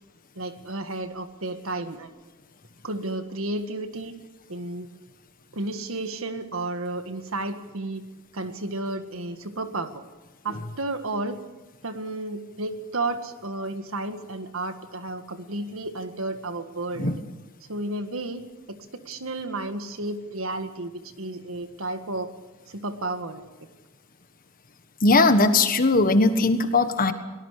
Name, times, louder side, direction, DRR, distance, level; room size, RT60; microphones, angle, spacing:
voice 1, 0.4-2.1 2.8-4.1 4.5-4.9 5.5-8.0 8.3-10.0 10.4-11.4 11.8-17.1 17.7-18.4 18.7-22.3 22.7-23.5, right 2 dB, 70° right, 8 dB, 1.7 m, -32 dB
voice 2, 25.0-27.1, left 3 dB, 40° left, 9 dB, 1.5 m, -19 dB
23.5 x 18.5 x 6.6 m, 1.2 s
head